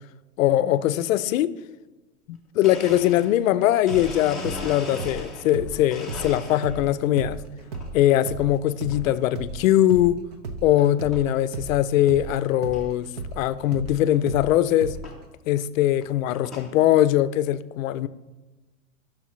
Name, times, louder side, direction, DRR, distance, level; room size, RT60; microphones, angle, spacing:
voice 1, 0.4-1.5 2.3-7.4 7.9-10.2 10.6-15.0 15.5-18.1, left 13 dB, 65° left, 0.5 m, -21 dB
Domestic sounds home sounds, 2.3-2.4 2.6-5.6 5.9-6.9 7.4-7.9 8.9-9.2 9.8-9.9 10.8-10.9 11.1-11.5 11.9-12.0 12.2-12.3 12.7-12.8 14.1-14.2 15.0-15.2 15.8-16.8, left 2 dB, ahead, 0.8 m, -39 dB
sound 1, 3.7-10.7 11.0-15.3, right 3 dB, 30° right, 0.4 m, -35 dB
11.0 x 6.2 x 3.2 m
supercardioid pair, 160°, 43 cm